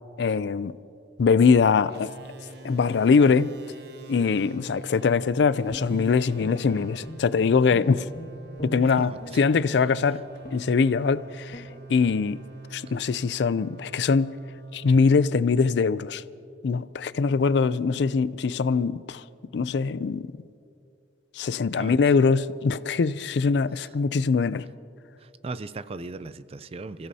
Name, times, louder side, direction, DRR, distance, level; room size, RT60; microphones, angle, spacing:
voice 1, 0.2-0.7 1.2-2.1 2.6-3.6 4.1-8.1 8.6-10.2 10.5-11.6 11.9-12.4 12.7-14.3 14.7-16.2 16.6-19.2 19.5-20.3 21.3-24.7, left 5 dB, 70° left, 0.4 m, -22 dB
sound 1, 1.9-16.4, right 3 dB, 65° right, 1.2 m, -44 dB
Guitar, 5.7-7.4 7.7-9.4 9.8-10.0 10.4-10.7 11.1-11.2 11.5-11.7 12.0-12.2, equal, 45° left, 1.8 m, -40 dB
voice 2, 8.8-9.4 21.8-22.0 25.2-27.1, right 3 dB, 35° right, 0.4 m, -37 dB
29.5 x 15.5 x 2.8 m
head